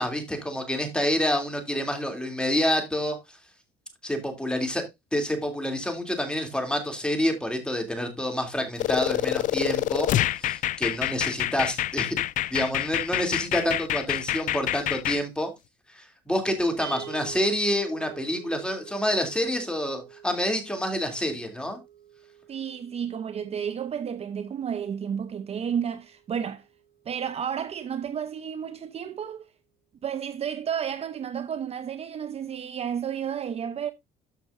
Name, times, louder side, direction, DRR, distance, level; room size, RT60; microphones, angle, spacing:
voice 1, 0.0-3.2 4.0-4.8 5.1-12.1 12.5-15.5 15.9-21.8, left 1 dB, 5° left, 2.9 m, -28 dB
sound 1, 8.8-15.2, left 14 dB, 50° left, 0.4 m, -27 dB
sound 2, 16.8-27.1, right 10 dB, 60° right, 3.5 m, -47 dB
voice 2, 22.5-26.6 27.1-29.4 30.0-33.9, right 8 dB, 40° right, 0.7 m, -31 dB
13.0 x 5.9 x 2.6 m
cardioid pair, 110°, 17 cm